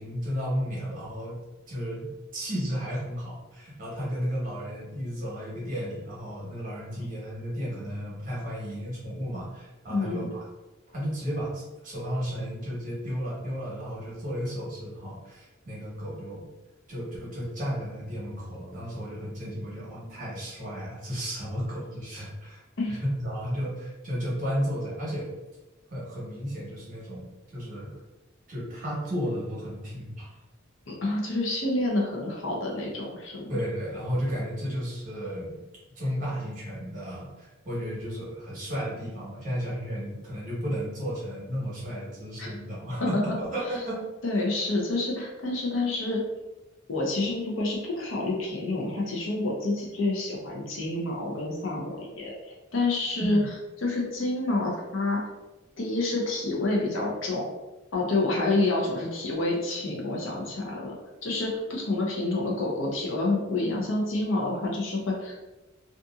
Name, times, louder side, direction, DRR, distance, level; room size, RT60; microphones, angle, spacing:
voice 1, 0.0-1.4 1.7-2.1 2.3-10.5 10.9-16.5 16.9-22.6 22.9-25.3 25.9-28.0 28.5-30.3 33.5-35.6 35.9-43.9 53.2-53.5, equal, 40° right, -6 dB, 1.1 m, -33 dB
voice 2, 9.9-10.3 22.8-23.0 30.9-33.5 42.4-42.6 43.3-43.4 43.7-43.8 44.2-46.2 46.9-53.4 53.8-55.2 55.8-57.5 57.9-60.9 61.2-65.4, left 2 dB, 65° left, -2 dB, 0.7 m, -28 dB
2.7 x 2.5 x 2.4 m, 1.1 s
head